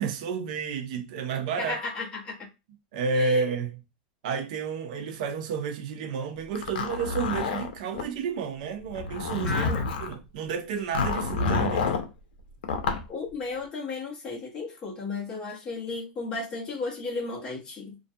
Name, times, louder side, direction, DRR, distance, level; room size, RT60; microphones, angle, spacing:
voice 1, 0.0-1.7 2.9-3.8 4.2-9.6 10.0-12.0, right 5 dB, 55° right, 0.5 m, -30 dB
voice 2, 1.6-2.5 3.1-3.4 9.4-9.9 13.1-18.0, left 3 dB, 15° left, 0.8 m, -34 dB
Zipper (clothing), 6.6-8.1 8.9-10.1 10.9-12.1 12.6-13.0, left 5 dB, 90° left, 0.5 m, -28 dB
2.4 x 2.1 x 2.6 m
supercardioid pair, 175°, 5 cm